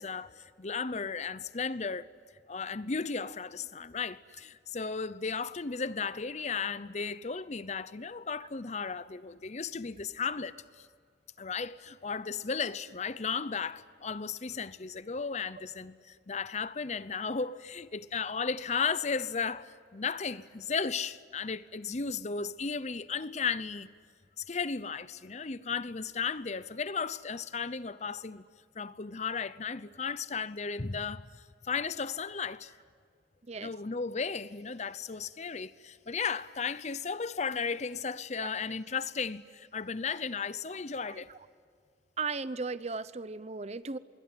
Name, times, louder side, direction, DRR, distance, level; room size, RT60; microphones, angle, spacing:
voice 1, 0.0-2.1 2.5-10.9 11.4-23.9 24.4-28.4 28.7-32.7 33.6-41.3, left 5 dB, 40° left, 0.7 m, -35 dB
voice 2, 42.2-44.0, right 4 dB, 35° right, 0.7 m, -36 dB
26.0 x 22.5 x 9.6 m
head